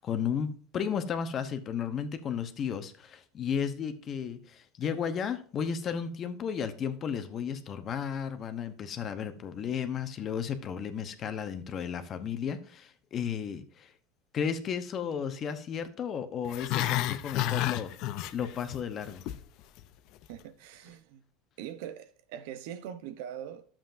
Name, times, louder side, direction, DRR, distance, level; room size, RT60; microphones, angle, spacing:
voice 1, 0.0-13.9 14.3-17.9 18.3-19.2, left 7 dB, 35° left, 0.9 m, -34 dB
Growling, 16.4-18.8 19.0-19.4 19.8-19.9, left 14 dB, 55° left, 0.5 m, -30 dB
voice 2, 20.3-21.2 21.6-23.6, right 10 dB, 75° right, 0.8 m, -42 dB
11.5 x 7.3 x 2.6 m
supercardioid pair, 130°, 0 cm